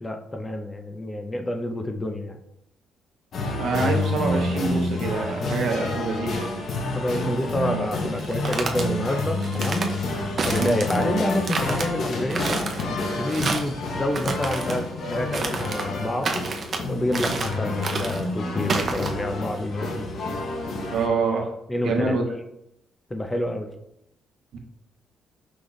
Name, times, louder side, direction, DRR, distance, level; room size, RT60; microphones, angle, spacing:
voice 1, 0.0-2.4 6.9-9.9 10.5-12.7 13.2-16.3 16.9-20.1 21.7-22.1 23.1-23.7, left 1 dB, 20° left, 5 dB, 0.5 m, -28 dB
sound 1, 3.3-21.1, left 2 dB, 65° left, 0.8 m, -29 dB
voice 2, 3.6-6.4 10.6-10.8 20.9-21.5 21.8-22.2 24.5-24.6, right 3 dB, 70° right, 2 dB, 0.9 m, -25 dB
sound 2, 8.2-8.8 9.4-9.9 10.4-11.1 11.4-11.9 12.3-12.8 13.3-13.7 14.1-14.8 15.3-15.9 16.2-16.8 17.1-17.6 17.8-18.2 18.7-19.1, right 4 dB, 45° right, 0.6 m, -29 dB
5.0 x 2.4 x 3.9 m, 0.80 s
cardioid pair, 90°, 0 cm